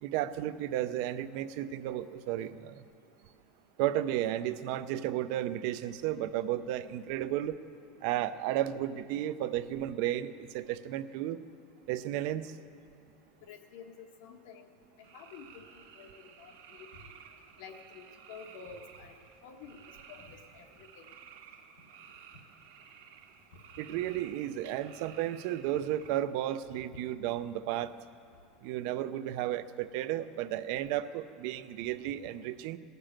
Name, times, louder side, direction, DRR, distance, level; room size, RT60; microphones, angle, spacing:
voice 1, 0.0-2.8 3.8-7.6 8.0-11.4 11.9-12.5 23.8-27.9 28.6-32.8, right 12 dB, 55° right, 12 dB, 0.5 m, -33 dB
voice 2, 13.5-14.6 15.1-15.6 16.0-16.1 16.4-16.9 17.6-19.1 19.4-19.8 20.1-21.0, left 6 dB, 75° left, 4 dB, 1.3 m, -49 dB
sound 1, 15.0-26.1, right 7 dB, 90° right, 1.2 m, -54 dB
17.0 x 6.7 x 8.9 m, 2.4 s
supercardioid pair, 170°, 0 cm